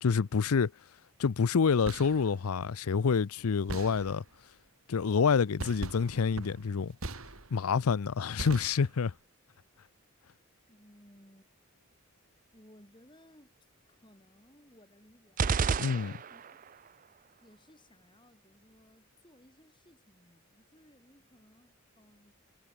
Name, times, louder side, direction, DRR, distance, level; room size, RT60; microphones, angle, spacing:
voice 1, 0.0-0.7 1.2-4.2 4.9-7.0 7.5-9.1 15.8-16.1, left 5 dB, 75° left, 0.5 m, -27 dB
sound 1, 1.6-2.3 3.7-4.4 5.6-7.8 8.4-9.2, right 2 dB, 70° right, 2.8 m, -41 dB
voice 2, 10.7-11.5 12.5-13.5 13.9-16.8 17.4-22.3, equal, 20° left, 7.1 m, -60 dB
sound 2, 15.4-16.7, right 5 dB, 35° right, 0.4 m, -30 dB
head